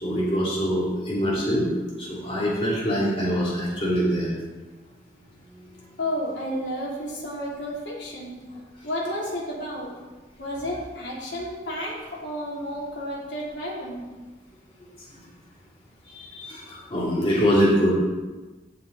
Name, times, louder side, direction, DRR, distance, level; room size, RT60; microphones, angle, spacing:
voice 1, 0.0-1.7 2.0-4.3 16.1-17.9, equal, 30° left, -7 dB, 2.6 m, -24 dB
voice 2, 6.0-8.4 8.8-9.9 10.4-14.0, equal, 85° left, -5 dB, 3.0 m, -31 dB
16.0 x 5.5 x 3.9 m, 1.2 s
head